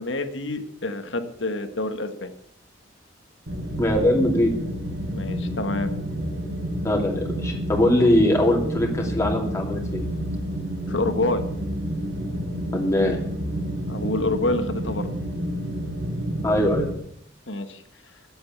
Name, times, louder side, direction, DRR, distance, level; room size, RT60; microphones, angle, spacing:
voice 1, 0.0-2.3 5.1-5.9 10.9-11.4 13.9-15.1 17.5-17.8, left 2 dB, 70° left, 8 dB, 1.4 m, -27 dB
sound 1, 3.5-16.9, equal, 75° right, 3.4 m, -29 dB
voice 2, 3.8-4.5 6.8-10.0 12.7-13.2 16.4-16.9, left 1 dB, 15° left, 0 dB, 2.6 m, -21 dB
11.5 x 8.0 x 8.1 m, 0.70 s
head